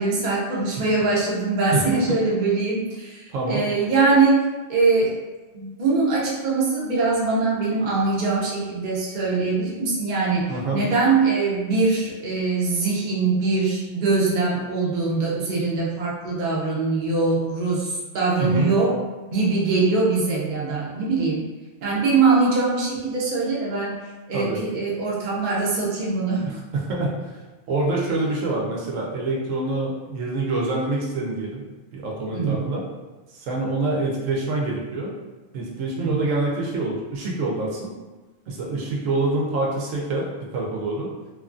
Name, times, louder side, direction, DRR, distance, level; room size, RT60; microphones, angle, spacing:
voice 1, 0.0-4.4 4.7-5.1 5.5-19.0 19.3-21.4 21.8-24.0 24.3-26.5 32.3-32.7 36.0-36.2, right 3 dB, 45° right, -5 dB, 0.7 m, -22 dB
voice 2, 1.7-2.0 3.3-3.6 10.5-10.8 18.4-18.7 24.3-24.6 26.4-27.4 27.7-31.6 31.9-32.8 33.3-35.1 35.5-38.0 38.5-41.1, right 2 dB, 85° right, -2 dB, 1.0 m, -26 dB
2.9 x 2.3 x 2.4 m, 1.2 s
omnidirectional pair, 1.3 m